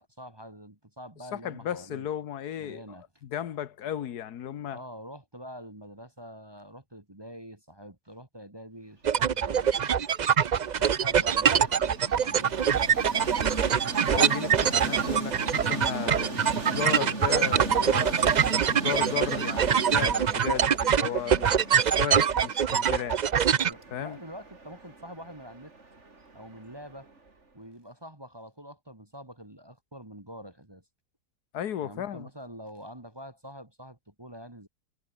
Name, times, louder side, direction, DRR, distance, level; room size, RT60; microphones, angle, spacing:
voice 1, 0.0-2.1 2.6-3.0 4.7-10.1 10.8-13.5 23.5-25.7 26.3-27.1 27.5-30.8 31.8-34.7, equal, 15° right, 2.0 m, -46 dB
voice 2, 1.3-3.0 3.2-4.8 14.1-18.2 18.6-23.2 23.9-24.2 31.5-32.3, left 10 dB, 80° left, 1.6 m, -34 dB
sound 1, 9.0-23.7, right 8 dB, 75° right, 0.4 m, -24 dB
Train, 9.2-27.3, right 3 dB, 45° right, 3.5 m, -38 dB
omnidirectional pair, 1.7 m